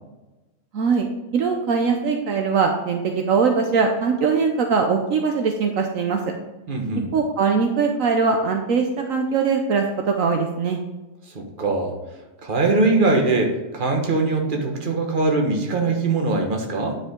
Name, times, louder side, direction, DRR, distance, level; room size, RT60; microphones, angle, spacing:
voice 1, 0.7-1.1 1.3-6.2 7.1-10.8, right 5 dB, 70° right, 3 dB, 1.1 m, -21 dB
voice 2, 6.7-7.1 11.3-11.9 12.4-17.0, right 3 dB, 35° right, 2 dB, 1.4 m, -21 dB
9.7 x 5.4 x 3.7 m, 1.1 s
omnidirectional pair, 1.5 m